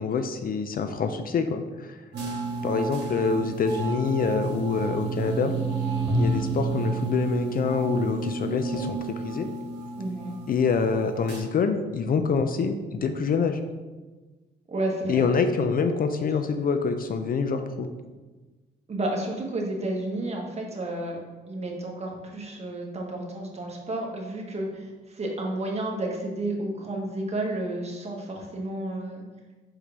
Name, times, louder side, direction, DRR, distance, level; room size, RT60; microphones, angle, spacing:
voice 1, 0.0-1.9 2.6-5.5 6.1-9.5 10.5-13.6 15.1-17.9, left 5 dB, 45° left, 8 dB, 0.5 m, -26 dB
sound 1, 2.1-11.4, right 3 dB, 60° right, 1.6 m, -31 dB
voice 2, 10.0-10.3 14.7-15.2 18.9-21.2 21.5-29.2, right 1 dB, 35° right, 0 dB, 1.4 m, -31 dB
5.6 x 4.9 x 3.4 m, 1.3 s
cardioid pair, 90°, 20 cm